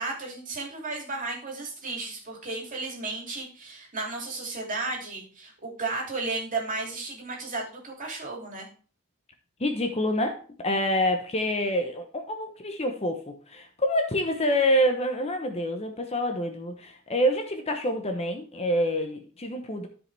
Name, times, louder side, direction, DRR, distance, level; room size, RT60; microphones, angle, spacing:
voice 1, 0.0-8.7, right 3 dB, 35° right, -1 dB, 2.8 m, -34 dB
voice 2, 9.6-19.9, equal, 30° left, 5 dB, 0.8 m, -27 dB
13.0 x 5.1 x 3.3 m, 0.40 s
head